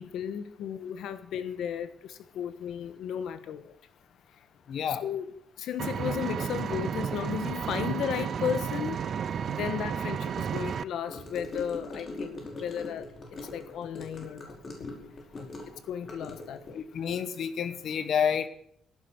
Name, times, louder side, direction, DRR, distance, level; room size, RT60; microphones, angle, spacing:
voice 1, 0.0-3.7 4.9-5.3 5.6-13.1 13.4-14.6 15.9-16.8, left 8 dB, 80° left, 1.3 m, -34 dB
voice 2, 4.7-5.0 15.4-15.5 16.7-18.5, left 7 dB, 60° left, 1.3 m, -29 dB
Engine, 5.8-10.8, right 7 dB, 50° right, 0.6 m, -32 dB
Gurgling / Car passing by / Sink (filling or washing), 11.1-16.8, left 2 dB, 35° left, 5.1 m, -41 dB
17.0 x 10.5 x 7.8 m
cardioid pair, 145°, 0 cm